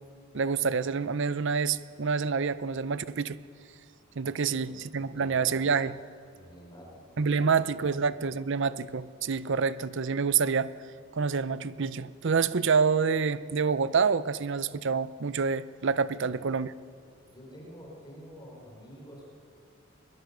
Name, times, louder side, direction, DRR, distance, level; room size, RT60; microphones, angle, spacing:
voice 1, 0.3-3.4 4.2-5.9 7.2-10.7 11.2-16.7, right 5 dB, 60° right, 16 dB, 0.6 m, -27 dB
voice 2, 4.3-4.7 5.0-5.5 6.3-7.5 16.1-16.4 17.3-19.3, equal, 20° left, -2 dB, 4.1 m, -48 dB
22.0 x 21.0 x 6.6 m, 2.3 s
head